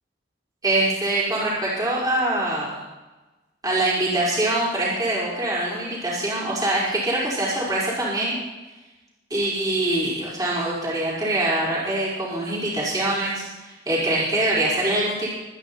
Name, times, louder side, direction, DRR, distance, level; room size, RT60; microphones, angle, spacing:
voice 1, 0.6-2.8 3.6-8.3 9.3-15.3, right 1 dB, 20° right, -7 dB, 5.1 m, -24 dB
25.0 x 10.0 x 4.3 m, 1.1 s
head